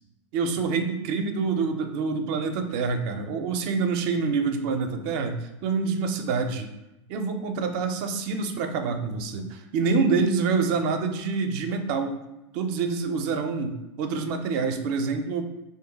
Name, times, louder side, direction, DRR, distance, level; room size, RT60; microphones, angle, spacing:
voice 1, 0.3-6.7 7.1-12.2 12.5-15.4, right 4 dB, 50° right, 6 dB, 0.4 m, -26 dB
2.5 x 2.2 x 3.8 m, 0.96 s
hypercardioid pair, 90°, 15 cm